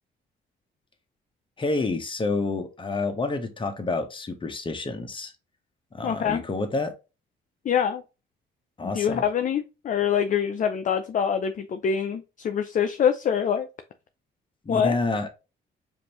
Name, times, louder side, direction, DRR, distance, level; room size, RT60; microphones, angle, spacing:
voice 1, 1.6-5.3 5.9-6.9 8.8-9.2 14.6-15.3, left 3 dB, 25° left, 0.9 m, -28 dB
voice 2, 6.0-6.4 7.6-8.0 8.8-13.7 14.7-15.0, left 7 dB, 40° left, 0.5 m, -25 dB
5.1 x 2.7 x 2.9 m
cardioid pair, 90°, 20 cm